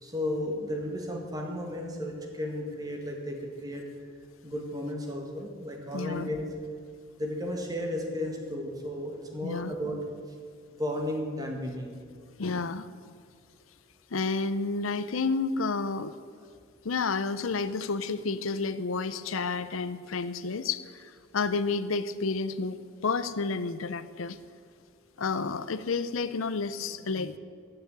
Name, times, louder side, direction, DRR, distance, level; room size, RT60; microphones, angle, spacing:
voice 1, 0.0-3.9 4.4-6.5 7.2-10.0 10.8-12.0, left 1 dB, 20° right, 2 dB, 1.8 m, -34 dB
voice 2, 5.9-6.3 9.4-9.7 12.4-12.9 14.1-16.1 16.8-24.4 25.2-27.4, left 4 dB, 85° left, 14 dB, 0.6 m, -30 dB
14.5 x 6.9 x 9.3 m, 2.2 s
head